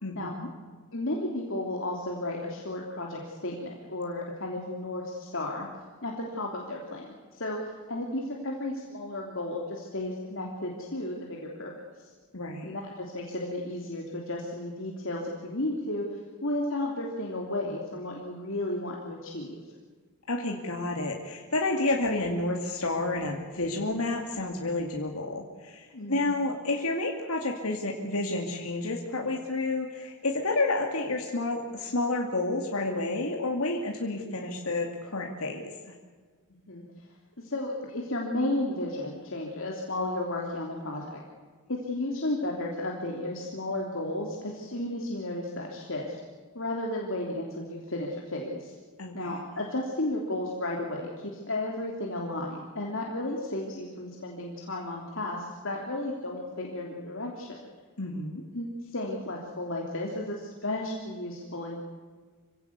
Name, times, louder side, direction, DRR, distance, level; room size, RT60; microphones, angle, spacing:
voice 1, 0.0-0.5 12.3-12.7 20.3-35.9 49.0-49.3 58.0-58.5, left 2 dB, 80° left, 1 dB, 2.5 m, -30 dB
voice 2, 0.9-5.7 6.0-11.7 12.6-19.6 25.9-26.3 36.7-36.8 37.4-41.2 41.7-46.2 46.5-48.7 49.1-57.6 58.5-61.8, left 1 dB, 60° left, -1 dB, 3.2 m, -33 dB
26.0 x 17.0 x 8.2 m, 1.5 s
head